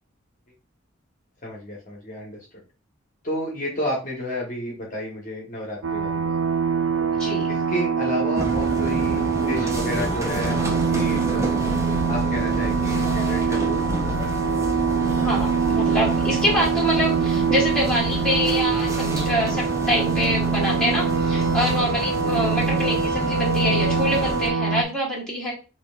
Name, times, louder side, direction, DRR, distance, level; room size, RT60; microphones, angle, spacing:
voice 1, 1.4-2.5 3.2-6.3 7.5-11.6 12.1-13.8, equal, 40° left, -3 dB, 1.1 m, -31 dB
sound 1, 5.8-24.8, right 5 dB, 65° right, 0.4 m, -24 dB
voice 2, 7.2-7.5 15.1-25.5, equal, 5° left, -5 dB, 1.6 m, -25 dB
sound 2, 8.4-24.5, right 1 dB, 15° right, 0.5 m, -30 dB
5.0 x 3.0 x 2.3 m, 0.33 s
head